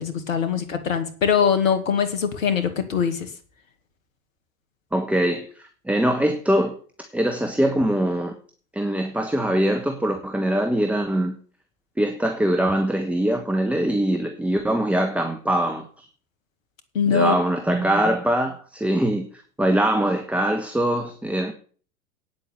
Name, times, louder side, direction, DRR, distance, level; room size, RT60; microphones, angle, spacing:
voice 1, 0.0-3.3 16.9-17.4, left 7 dB, 70° left, 2.4 m, -22 dB
voice 2, 4.9-8.3 8.7-11.3 12.0-16.1 17.1-19.3 19.6-21.5, right 1 dB, 5° right, 1.3 m, -23 dB
9.2 x 7.9 x 8.7 m
figure-of-eight pair, 90°, 42 cm